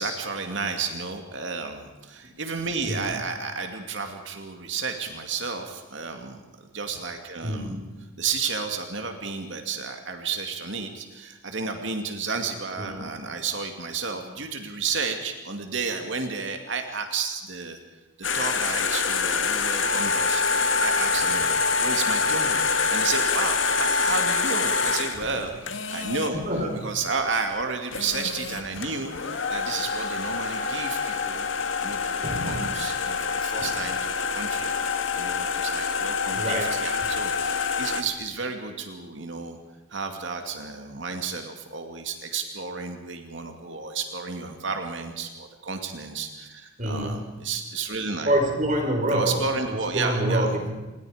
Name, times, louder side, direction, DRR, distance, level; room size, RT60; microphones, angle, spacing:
voice 1, 0.0-6.4 6.7-7.7 8.2-17.8 18.2-22.6 22.9-26.4 26.8-31.5 31.8-34.7 35.1-39.6 39.9-48.3 49.1-50.5, right 4 dB, 70° right, 5 dB, 2.4 m, -32 dB
voice 2, 7.4-7.9 12.8-13.1 25.3-25.4 26.3-26.9 32.2-32.7 33.6-33.7 36.4-36.8 46.8-47.4 48.2-49.4 49.9-50.7, right 1 dB, 40° right, 3 dB, 4.6 m, -27 dB
sound 1, 18.2-26.3 27.6-27.7 27.9-38.0, left 5 dB, 80° left, 1.9 m, -26 dB
28.0 x 21.0 x 5.1 m, 1.1 s
head